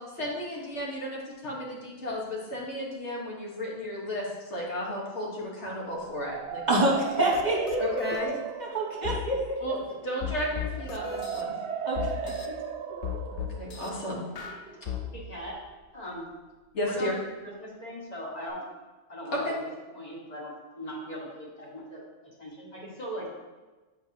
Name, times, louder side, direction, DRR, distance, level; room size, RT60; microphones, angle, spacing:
voice 1, 0.2-6.6 7.8-8.4 9.6-11.5 13.6-14.2 16.7-17.1 19.4-19.5, left 1 dB, 80° left, -3 dB, 1.6 m, -33 dB
sound 1, 5.9-15.8, right 7 dB, 70° right, 0.8 m, -38 dB
voice 2, 6.7-7.8 8.6-9.6 11.8-12.3, right 1 dB, 40° right, -3 dB, 1.1 m, -26 dB
sound 2, 7.3-7.4 7.7-8.2 9.0-9.2 10.2-11.4 12.0-12.5 13.0-13.9 14.4-15.0, left 8 dB, 55° left, 0.4 m, -34 dB
voice 3, 15.1-15.6 15.9-16.3 16.8-17.2 17.4-18.6 19.1-19.6 19.9-22.0 22.4-23.3, equal, 35° left, -4 dB, 1.5 m, -39 dB
7.8 x 4.6 x 2.8 m, 1.2 s
omnidirectional pair, 1.2 m